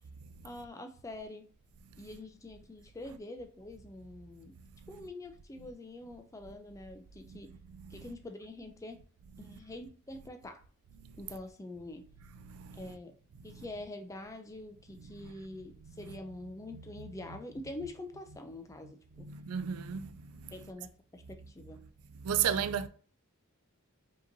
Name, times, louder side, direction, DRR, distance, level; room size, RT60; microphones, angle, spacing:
voice 1, 0.4-1.5 2.0-4.5 4.9-7.5 7.9-9.0 9.4-10.6 11.2-12.1 12.7-13.1 13.4-19.0 19.9-20.0 20.5-21.8, left 2 dB, 15° left, 0.4 m, -45 dB
voice 2, 12.4-12.9 13.5-13.6 15.0-16.2 16.7-17.4 19.2-20.6 22.2-22.9, right 8 dB, 75° right, 0.4 m, -37 dB
5.1 x 2.9 x 2.6 m
head